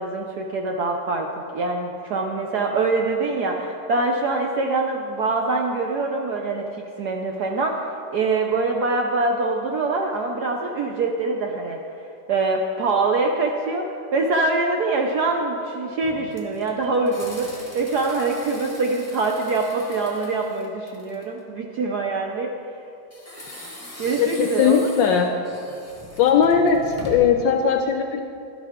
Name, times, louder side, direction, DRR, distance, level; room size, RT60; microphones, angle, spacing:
voice 1, 0.0-6.7 7.0-11.8 12.3-22.5 24.0-24.8, right 3 dB, 70° right, 1 dB, 1.0 m, -24 dB
sound 1, 16.0-21.4 23.1-27.5, left 2 dB, 10° left, 0.9 m, -41 dB
voice 2, 24.2-25.3 26.2-28.2, left 7 dB, 75° left, 5 dB, 1.1 m, -19 dB
11.5 x 11.5 x 3.6 m, 2.6 s
omnidirectional pair, 2.4 m